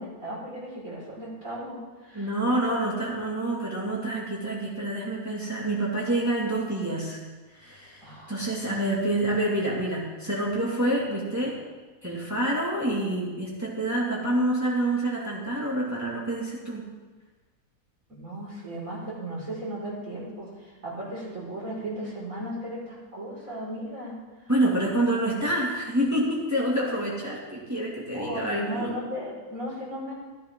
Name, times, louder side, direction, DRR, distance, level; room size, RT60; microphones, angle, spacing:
voice 1, 0.0-2.3 8.0-8.5 18.1-24.2 28.1-30.1, right 1 dB, 55° right, -7 dB, 5.4 m, -36 dB
voice 2, 2.1-7.2 7.5-11.6 12.0-16.9 24.5-29.0, right 1 dB, 10° right, -5 dB, 2.1 m, -27 dB
14.0 x 13.5 x 3.7 m, 1.3 s
omnidirectional pair, 1.6 m